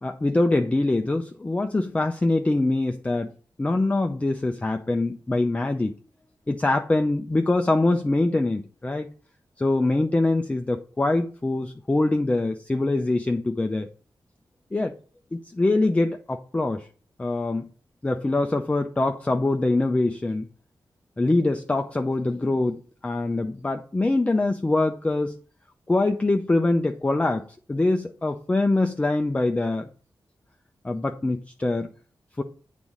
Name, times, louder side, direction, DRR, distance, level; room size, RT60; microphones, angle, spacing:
voice 1, 0.0-3.3 3.6-5.9 6.5-9.1 9.6-13.9 14.7-14.9 15.3-16.9 17.2-17.7 18.0-20.5 21.2-25.3 25.9-29.8 30.8-31.9 32.4-32.5, left 2 dB, 15° left, 0.5 m, -24 dB
8.9 x 4.2 x 4.9 m
wide cardioid pair, 170°, 8 cm